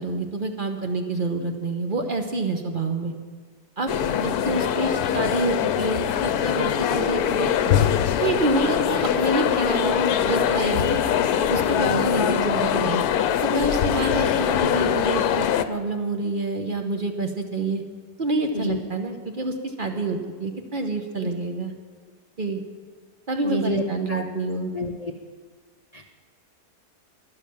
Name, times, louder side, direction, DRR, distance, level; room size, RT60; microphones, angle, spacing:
voice 1, 0.0-3.1 3.8-3.9 4.2-7.5 8.2-11.0 11.5-13.0 13.4-17.8 18.2-21.7 22.4-22.6 23.3-24.7, right 2 dB, 35° right, 4 dB, 1.0 m, -27 dB
sound 1, 3.9-15.6, left 9 dB, 75° left, 1.1 m, -23 dB
voice 2, 4.0-4.6 11.8-12.6 18.5-18.8 23.4-23.8 24.1-24.2 24.7-25.1 25.9-26.2, left 1 dB, 50° left, 4 dB, 0.4 m, -29 dB
12.0 x 11.0 x 7.1 m, 1.5 s
omnidirectional pair, 1.7 m